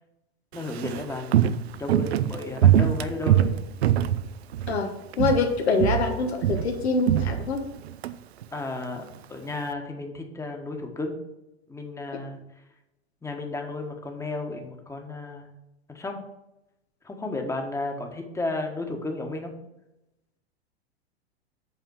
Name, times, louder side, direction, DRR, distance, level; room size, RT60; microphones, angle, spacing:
voice 1, 0.5-3.5 8.5-11.2 11.7-12.4 13.2-15.5 15.9-16.2 17.0-19.5, left 2 dB, 10° left, 3 dB, 1.3 m, -33 dB
Walk footsteps, 0.5-4.9 5.1-5.5 5.8-8.1 8.4-8.5, right 11 dB, 70° right, 0.6 m, -23 dB
voice 2, 5.2-7.6, left 4 dB, 75° left, 2 dB, 1.3 m, -25 dB
8.2 x 4.2 x 6.3 m, 0.91 s
hypercardioid pair, 100°, 33 cm